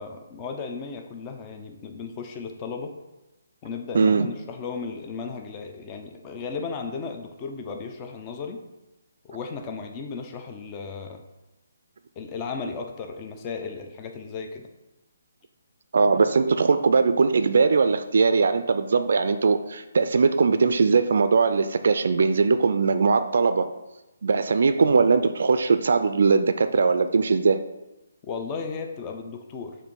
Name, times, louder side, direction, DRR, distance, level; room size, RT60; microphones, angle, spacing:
voice 1, 0.0-2.9 3.6-8.6 9.3-11.2 12.2-14.7 28.2-29.8, left 5 dB, 20° left, 4 dB, 0.5 m, -35 dB
voice 2, 3.9-4.3 15.9-23.7 24.2-27.6, right 4 dB, 65° right, 10 dB, 0.4 m, -20 dB
6.7 x 2.6 x 5.3 m, 0.98 s
hypercardioid pair, 160°, 0 cm